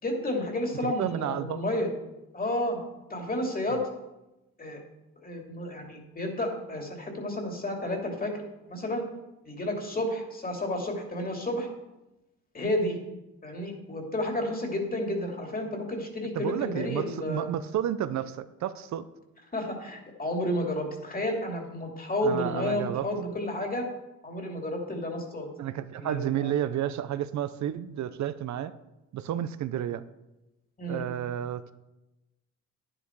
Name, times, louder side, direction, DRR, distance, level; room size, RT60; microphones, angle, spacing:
voice 1, 0.0-1.9 2.3-2.8 3.1-3.9 4.6-4.8 5.2-9.1 9.4-11.7 12.5-13.0 13.4-17.5 19.5-23.9 24.2-25.5 26.0-26.5 30.8-31.0, left 1 dB, 30° left, 2 dB, 2.9 m, -31 dB
voice 2, 0.8-1.6 16.4-19.1 22.2-23.1 25.6-28.7 29.1-30.0 30.9-31.7, right 11 dB, 65° right, 13 dB, 0.7 m, -31 dB
10.5 x 10.0 x 4.7 m, 0.96 s
cardioid pair, 90°, 30 cm